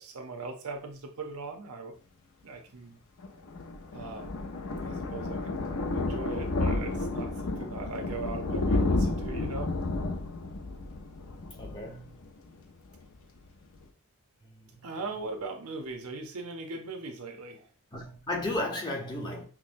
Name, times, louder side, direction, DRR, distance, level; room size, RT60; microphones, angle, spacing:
voice 1, 0.0-2.0 2.4-3.0 3.9-4.3 4.8-9.7 14.8-17.7, right 3 dB, 85° right, 0.7 m, -39 dB
Thunder, 3.2-12.6 12.9-13.2 13.5-13.6 13.7-13.8, left 2 dB, 70° left, 0.6 m, -31 dB
voice 2, 11.6-12.2 14.4-14.9 17.9-19.4, left 1 dB, 20° left, 0.7 m, -34 dB
5.8 x 2.1 x 2.5 m
head